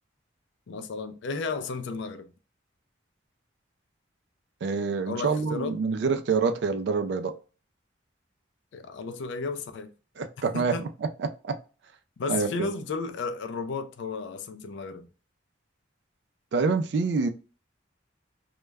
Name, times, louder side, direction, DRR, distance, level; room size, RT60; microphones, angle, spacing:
voice 1, 0.7-2.3 5.1-5.8 8.7-9.9 10.5-10.9 12.2-15.1, left 4 dB, 70° left, 0.3 m, -33 dB
voice 2, 4.6-7.3 10.2-10.8 11.2-11.6 12.3-12.7 16.5-17.3, right 4 dB, 60° right, 0.3 m, -26 dB
2.2 x 2.0 x 3.3 m
head